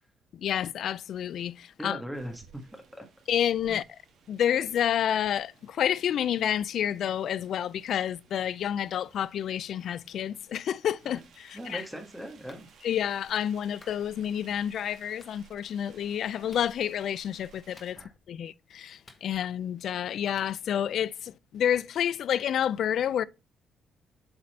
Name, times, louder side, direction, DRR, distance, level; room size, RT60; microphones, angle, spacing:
voice 1, 0.3-2.0 3.3-3.8 4.3-11.8 12.8-18.0 18.3-23.2, left 9 dB, 70° left, 0.4 m, -29 dB
voice 2, 1.8-3.0 11.1-11.2 11.5-12.7 17.9-18.1, equal, ahead, 1.4 m, -39 dB
sound 1, 2.1-17.9, right 6 dB, 65° right, 1.8 m, -59 dB
Clapping, 12.5-12.7 13.8-14.0 15.2-15.4 16.5-16.7 17.8-18.2 19.1-19.6 20.4-20.5, left 3 dB, 35° left, 1.3 m, -55 dB
7.7 x 4.0 x 4.2 m
cardioid pair, 90°, 0 cm